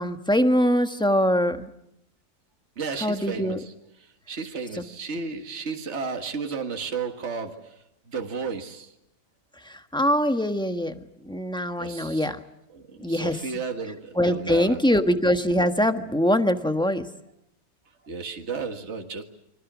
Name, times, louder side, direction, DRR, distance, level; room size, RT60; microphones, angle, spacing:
voice 1, 0.0-1.7 3.0-3.6 4.7-4.8 9.6-12.4 13.0-13.5 14.1-17.1, equal, 5° left, 7 dB, 1.3 m, -23 dB
voice 2, 2.8-3.7 4.3-7.8 8.1-8.9 11.8-12.3 12.7-14.8 18.1-19.2, right 5 dB, 50° right, 4 dB, 2.1 m, -33 dB
29.5 x 24.5 x 6.2 m, 0.79 s
omnidirectional pair, 1.6 m